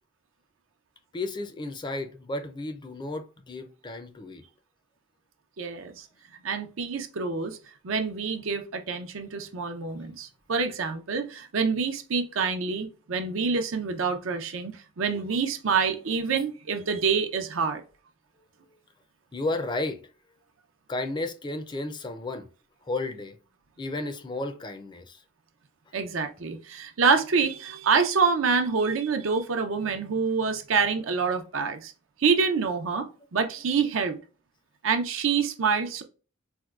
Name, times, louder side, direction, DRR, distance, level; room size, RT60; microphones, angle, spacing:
voice 1, 1.1-4.4 19.3-20.1 20.9-22.5 22.8-23.4 23.8-25.2, left 2 dB, 25° left, 0.4 m, -33 dB
voice 2, 5.6-6.1 6.4-7.6 7.8-17.8 25.9-31.9 32.2-34.2 34.8-36.0, right 5 dB, 85° right, 0.6 m, -26 dB
4.3 x 2.2 x 2.3 m
head